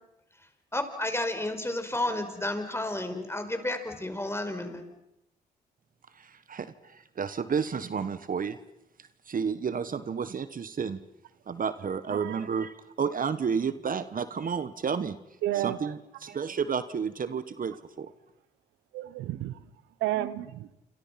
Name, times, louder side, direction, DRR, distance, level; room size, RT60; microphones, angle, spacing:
voice 1, 0.7-4.8, left 1 dB, 15° left, 7 dB, 5.1 m, -31 dB
voice 2, 6.2-8.6 9.3-11.0 11.5-15.2 15.6-16.0 16.2-18.1, right 6 dB, 50° right, 13 dB, 1.3 m, -31 dB
voice 3, 12.1-12.4 15.4-15.9 18.9-19.7 20.0-20.7, right 14 dB, 90° right, 16 dB, 1.0 m, -31 dB
27.5 x 27.5 x 5.9 m, 0.85 s
supercardioid pair, 55°, 18 cm